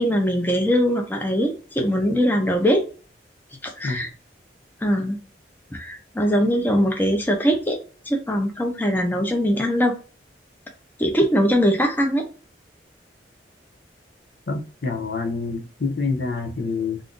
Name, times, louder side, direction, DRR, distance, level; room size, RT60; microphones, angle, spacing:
voice 1, 0.0-2.8 3.6-4.1 4.8-5.2 5.7-7.8 8.1-9.9 11.0-12.3, equal, 10° left, 0.6 m, -21 dB
voice 2, 14.5-17.0, left 4 dB, 65° left, 0.6 m, -27 dB
2.5 x 2.5 x 3.5 m
head